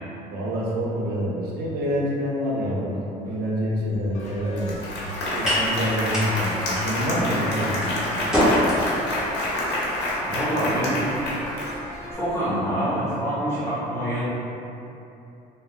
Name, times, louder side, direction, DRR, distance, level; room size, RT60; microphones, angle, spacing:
voice 1, 0.3-4.8 5.3-7.9, equal, 70° right, -4 dB, 0.6 m, -27 dB
sound 1, 3.9-12.3, equal, 5° right, 0.8 m, -29 dB
sound 2, 4.1-12.1, left 1 dB, 40° left, 0.5 m, -40 dB
Applause, 4.2-4.3 4.6-12.1, left 1 dB, 80° left, 0.7 m, -28 dB
voice 2, 10.3-11.1 12.1-14.2, equal, 15° left, -11 dB, 1.0 m, -26 dB
3.4 x 2.0 x 2.4 m, 2.9 s
cardioid pair, 110°, 17 cm